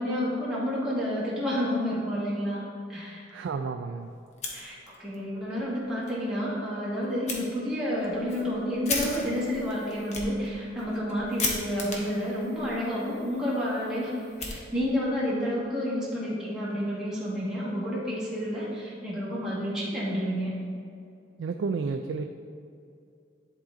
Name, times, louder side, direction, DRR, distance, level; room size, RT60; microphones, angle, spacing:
voice 1, 0.0-2.6 2.9-3.3 4.5-14.1 14.4-20.5, equal, 5° right, -9 dB, 1.7 m, -30 dB
voice 2, 3.3-4.1 21.4-22.2, right 4 dB, 80° right, 6 dB, 0.3 m, -31 dB
Fire, 4.3-5.2 5.5-5.6 6.0-6.1 7.3-7.4 8.0-15.1, left 3 dB, 40° left, 1.0 m, -37 dB
11.0 x 3.7 x 3.8 m, 2.5 s
head